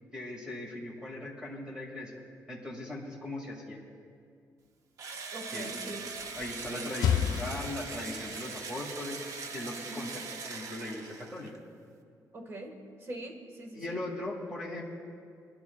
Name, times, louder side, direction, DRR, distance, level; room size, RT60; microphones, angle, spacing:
voice 1, 0.1-3.8 5.5-5.7 6.4-9.2 9.5-11.5 13.7-14.8, left 1 dB, 10° right, -3 dB, 2.2 m, -39 dB
Engine / Drill, 5.0-11.6, right 4 dB, 60° right, 0.7 m, -41 dB
voice 2, 5.3-6.1 6.7-6.9 9.9-10.0 12.3-12.7 13.0-14.0, right 1 dB, 40° right, 3 dB, 1.5 m, -42 dB
sound 1, 6.0-8.4, left 9 dB, 90° left, 0.4 m, -32 dB
25.5 x 11.0 x 2.3 m, 2.3 s
cardioid pair, 175°, 6 cm